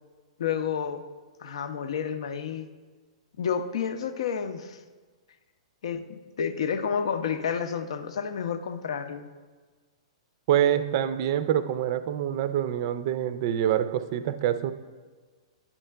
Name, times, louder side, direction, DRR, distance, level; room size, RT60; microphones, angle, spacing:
voice 1, 0.4-1.0 1.4-2.7 3.4-4.8 5.8-9.3, left 7 dB, 65° left, 9 dB, 0.6 m, -30 dB
voice 2, 10.5-14.7, right 10 dB, 50° right, 13 dB, 0.4 m, -26 dB
9.8 x 4.5 x 3.3 m, 1.4 s
hypercardioid pair, 115°, 3 cm